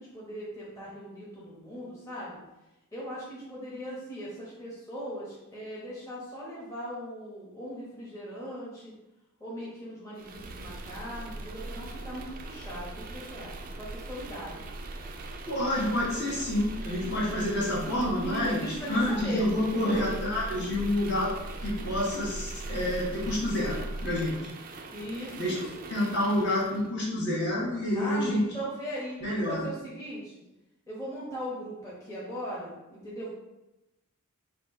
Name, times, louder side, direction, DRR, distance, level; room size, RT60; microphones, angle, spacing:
voice 1, 0.0-2.4 2.9-8.9 9.4-14.7 17.6-17.7 18.2-20.1 24.9-25.9 27.9-30.4 30.9-33.3, equal, 15° left, -8 dB, 1.0 m, -39 dB
sound 1, 10.2-26.9, right 2 dB, 40° right, 0.4 m, -40 dB
voice 2, 15.5-21.3 21.6-24.4 25.3-25.6 25.9-28.5 29.2-29.7, left 1 dB, 50° left, -6 dB, 1.5 m, -28 dB
4.2 x 2.5 x 4.2 m, 0.97 s
head